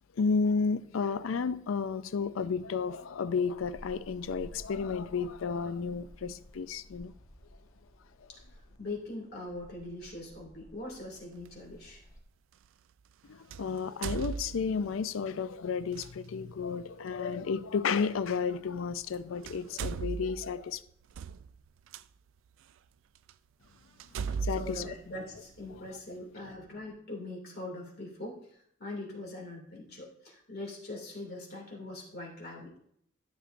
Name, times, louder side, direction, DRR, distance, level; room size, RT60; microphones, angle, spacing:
voice 1, 0.1-7.1 13.2-20.8 24.2-24.9, left 5 dB, 90° left, 0.4 m, -32 dB
sound 1, 3.5-12.2, equal, 20° left, 1.3 m, -54 dB
voice 2, 8.8-12.0 24.1-32.8, left 2 dB, 55° left, 2.5 m, -42 dB
sound 2, 11.4-11.6 13.5-15.0 15.9-16.1 18.0-18.1 19.0-19.1 19.4-22.0 22.7-22.8 23.3-23.4 24.0-25.8, right 5 dB, 70° right, 0.3 m, -37 dB
13.0 x 6.5 x 2.6 m
head